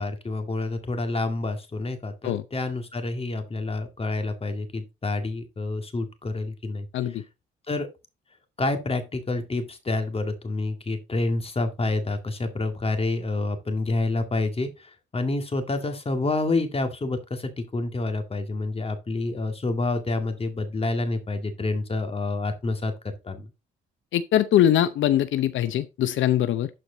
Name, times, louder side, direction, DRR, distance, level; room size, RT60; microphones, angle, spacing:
voice 1, 0.0-7.2 7.7-7.9 8.6-23.5, left 2 dB, 30° left, 2.1 m, -28 dB
voice 2, 24.1-26.7, left 11 dB, 75° left, 0.7 m, -22 dB
12.0 x 4.9 x 4.0 m
cardioid pair, 90°, 20 cm